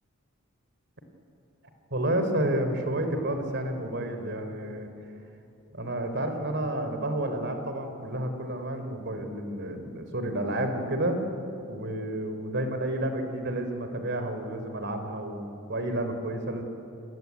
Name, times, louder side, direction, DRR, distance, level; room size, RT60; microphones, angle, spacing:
voice 1, 1.9-4.9 5.7-11.2 11.7-16.6, right 1 dB, 60° right, 7 dB, 3.8 m, -30 dB
30.0 x 19.5 x 9.6 m, 2.8 s
head